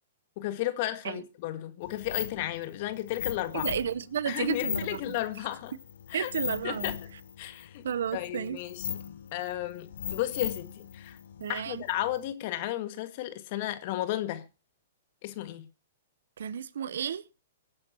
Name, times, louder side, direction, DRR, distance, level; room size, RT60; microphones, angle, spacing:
voice 1, 0.4-3.7 4.3-5.7 6.1-6.3 6.6-7.0 7.4-7.9 8.1-8.9 9.3-11.2 11.5-14.4 15.2-15.7, left 14 dB, 50° left, 1.7 m, -33 dB
sound 1, 1.8-12.3, left 9 dB, 70° left, 0.8 m, -39 dB
voice 2, 3.5-5.2 6.1-6.9 7.8-8.6 11.4-11.8 16.4-17.2, right 8 dB, 75° right, 0.9 m, -32 dB
24.0 x 9.7 x 2.9 m
hypercardioid pair, 125°, 0 cm